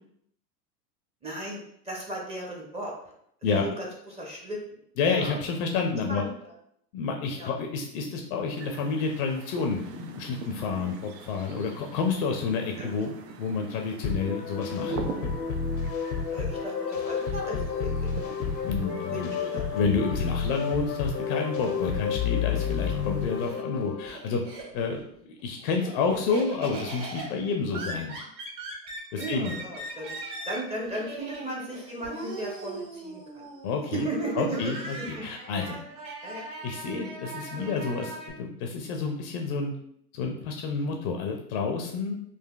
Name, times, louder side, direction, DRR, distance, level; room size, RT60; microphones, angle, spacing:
voice 1, 1.2-1.6 1.8-2.9 3.4-4.8 5.1-5.4 6.0-6.5 7.3-7.5 12.8-12.9 16.3-18.3 19.1-19.7 25.8-26.4 29.2-30.2 30.4-33.5 33.8-35.2 35.7-35.8 36.2-36.5 37.6-37.7, right 1 dB, 15° right, -1 dB, 0.5 m, -36 dB
voice 2, 5.0-6.2 6.9-13.1 13.4-15.0 18.6-19.3 19.7-24.4 24.7-25.0 25.4-28.2 29.1-29.5 33.6-34.1 34.4-35.8 36.6-39.7 40.1-42.1, left 4 dB, 40° left, 3 dB, 0.4 m, -29 dB
sound 1, 8.6-23.6, right 5 dB, 75° right, 0.6 m, -44 dB
sound 2, 14.0-24.1, left 6 dB, 80° left, 0.6 m, -30 dB
Laughter, 22.9-25.0 25.4-38.3, right 2 dB, 35° right, 1.2 m, -40 dB
3.9 x 2.5 x 2.3 m, 0.70 s
hypercardioid pair, 100°, 50 cm